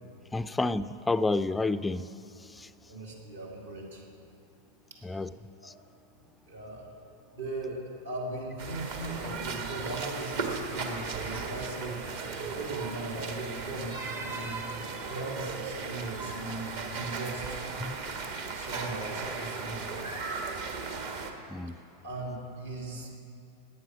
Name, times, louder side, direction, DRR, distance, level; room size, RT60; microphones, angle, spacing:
voice 1, 0.3-2.1 5.0-5.3 17.8-18.0 21.5-21.8, left 3 dB, 10° left, 14 dB, 0.4 m, -29 dB
voice 2, 2.9-4.0 5.6-5.7 6.5-6.9 7.3-12.0 12.4-14.0 14.3-14.6 15.1-17.6 18.5-19.9 22.0-23.2, right 2 dB, 70° right, -1 dB, 2.6 m, -38 dB
sound 1, 8.6-21.3, right 4 dB, 55° right, 1.6 m, -36 dB
16.5 x 9.8 x 6.1 m, 2.7 s
figure-of-eight pair, 90°, 0 cm